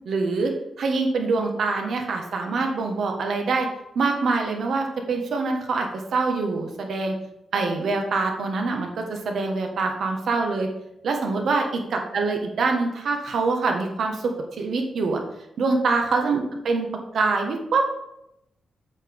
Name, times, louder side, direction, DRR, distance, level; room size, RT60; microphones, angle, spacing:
voice 1, 0.0-3.7 3.9-7.1 7.5-10.7 11.0-15.2 15.6-17.9, right 3 dB, 70° right, 3 dB, 1.5 m, -25 dB
8.3 x 8.3 x 3.7 m, 0.83 s
wide cardioid pair, 130°, 0 cm